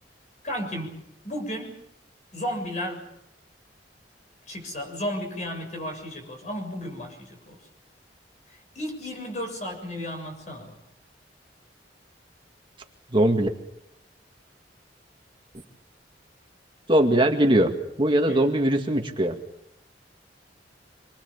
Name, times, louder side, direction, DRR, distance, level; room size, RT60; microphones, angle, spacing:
voice 1, 0.4-0.9 1.2-1.8 2.3-3.1 4.5-7.6 8.8-10.7 18.3-18.4, equal, 40° left, 4 dB, 7.2 m, -33 dB
voice 2, 13.1-13.5 16.9-19.4, right 1 dB, 30° right, 3 dB, 2.0 m, -21 dB
27.0 x 22.5 x 7.4 m, 0.80 s
head